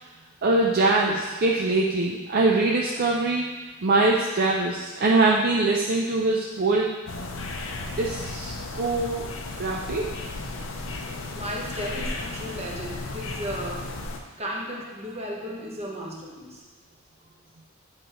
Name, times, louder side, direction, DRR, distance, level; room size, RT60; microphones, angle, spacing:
voice 1, 0.4-7.0 8.0-9.3 9.6-10.1, right 2 dB, 50° right, -2 dB, 0.5 m, -23 dB
sound 1, 7.1-14.2, left 2 dB, 70° left, 0.7 m, -34 dB
voice 2, 11.3-13.9 14.4-16.7, equal, 30° right, -2 dB, 1.1 m, -34 dB
8.5 x 4.6 x 3.1 m, 1.3 s
head